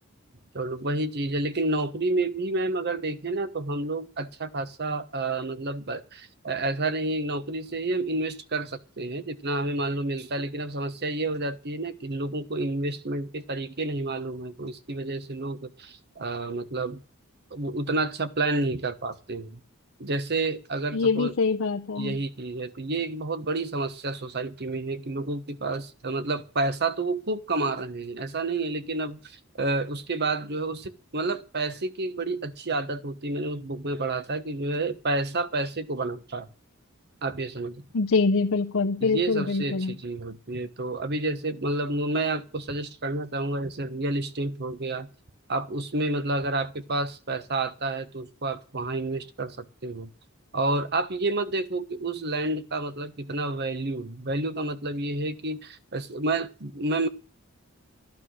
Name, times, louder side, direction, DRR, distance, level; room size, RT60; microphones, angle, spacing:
voice 1, 0.5-17.0 17.5-19.6 20.0-21.3 22.0-36.5 37.2-37.8 39.0-45.1 45.5-50.1 50.5-57.1, right 2 dB, 50° right, 1.1 m, -30 dB
voice 2, 20.9-22.2 37.9-39.9, left 4 dB, 65° left, 0.7 m, -24 dB
12.0 x 11.5 x 6.3 m
head